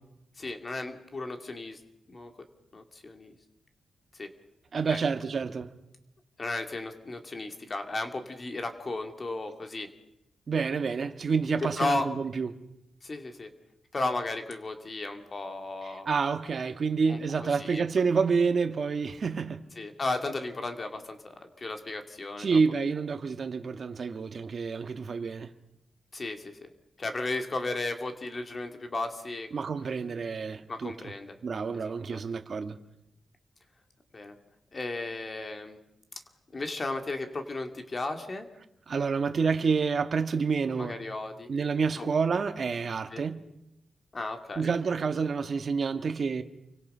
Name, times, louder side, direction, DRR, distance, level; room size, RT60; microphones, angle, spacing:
voice 1, 0.4-1.8 2.1-2.3 2.7-3.3 4.1-4.3 4.9-5.0 6.4-9.9 11.8-12.1 13.0-13.5 13.9-16.1 17.1-17.8 19.8-22.6 26.1-26.7 27.0-29.5 30.7-31.3 31.7-31.8 32.1-32.2 34.1-34.4 34.7-35.8 36.5-38.5 40.8-41.5 42.0-42.1 43.1-43.2 44.1-44.7, left 2 dB, 30° left, 2.5 m, -34 dB
voice 2, 4.7-5.7 10.5-12.5 15.8-19.6 22.4-25.5 29.5-30.9 31.4-32.8 38.9-41.0 41.5-43.4 44.5-46.4, right 5 dB, 45° right, 1.5 m, -28 dB
29.5 x 25.0 x 5.6 m
wide cardioid pair, 130°, 0 cm